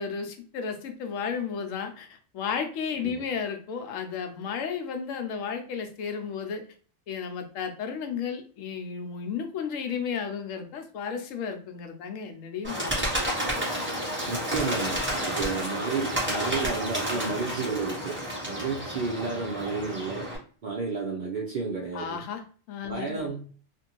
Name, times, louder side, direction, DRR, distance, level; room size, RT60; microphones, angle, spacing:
voice 1, 0.0-6.6 7.1-12.9 21.9-22.4 22.7-23.3, left 6 dB, 85° left, 6 dB, 1.0 m, -33 dB
Bird, 12.6-20.4, equal, 10° right, 0.8 m, -30 dB
voice 2, 14.2-20.3 20.6-22.2 22.9-23.5, right 4 dB, 65° right, -1 dB, 0.4 m, -32 dB
2.5 x 2.5 x 2.8 m, 0.42 s
omnidirectional pair, 1.3 m